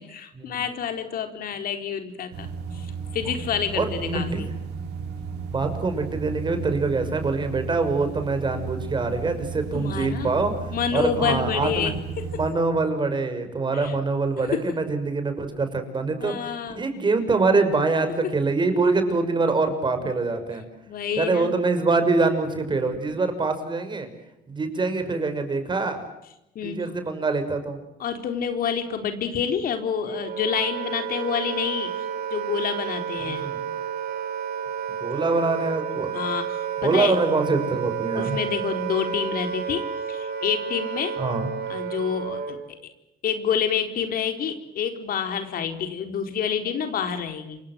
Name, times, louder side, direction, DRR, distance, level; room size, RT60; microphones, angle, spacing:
voice 1, 0.0-2.5 2.7-4.5 9.7-10.3 10.7-12.4 13.7-13.9 14.5-14.7 16.2-16.9 18.2-18.3 20.9-21.6 26.5-26.9 28.0-31.9 32.3-33.5 36.1-37.2 38.1-41.2 41.7-42.6 43.2-47.6, left 7 dB, 60° left, 7 dB, 4.2 m, -28 dB
sound 1, 2.3-12.5, right 6 dB, 90° right, 7.1 m, -34 dB
voice 2, 3.7-4.6 5.5-10.5 10.9-12.0 12.3-20.6 21.2-24.1 24.5-26.0 26.6-27.8 33.2-33.6 35.0-36.1 36.8-38.4 41.2-41.5, right 3 dB, 25° right, 8 dB, 6.3 m, -24 dB
Wind instrument woodwind instrument, 30.0-42.7, right 8 dB, 65° right, 5.5 m, -31 dB
28.5 x 25.5 x 7.7 m, 0.89 s
cardioid pair, 110°, 17 cm